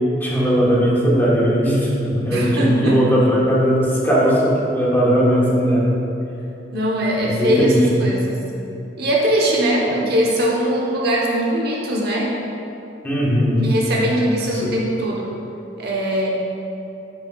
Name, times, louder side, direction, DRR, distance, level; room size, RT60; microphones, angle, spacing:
voice 1, 0.2-5.9 7.2-7.7 13.0-13.7 14.6-14.7, equal, 10° left, -6 dB, 1.2 m, -18 dB
voice 2, 2.3-3.1 6.7-8.4 9.0-12.3 13.6-15.3 15.8-16.3, equal, 60° right, -3 dB, 1.0 m, -21 dB
10.5 x 5.3 x 2.3 m, 3.0 s
head